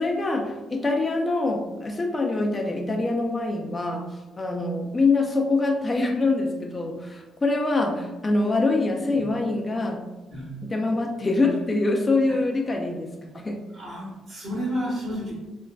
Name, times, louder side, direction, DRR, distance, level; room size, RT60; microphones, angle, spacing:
voice 1, 0.0-4.1 4.4-10.1 10.6-13.6, left 3 dB, 25° left, 1 dB, 0.3 m, -24 dB
voice 2, 13.7-15.3, equal, 60° right, -8 dB, 1.4 m, -31 dB
3.4 x 2.2 x 2.2 m, 1.2 s
cardioid pair, 90°, 0 cm